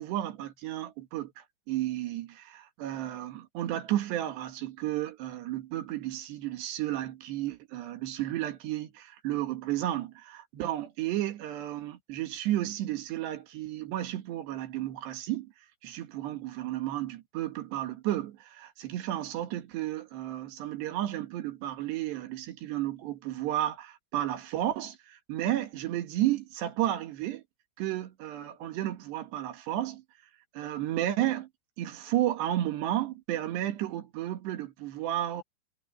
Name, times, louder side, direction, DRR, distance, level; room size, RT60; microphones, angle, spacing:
voice 1, 0.0-15.5 15.8-27.4 27.8-30.0 30.5-31.5 31.8-35.4, right 13 dB, 70° right, 3.6 m, -32 dB
omnidirectional pair, 5.4 m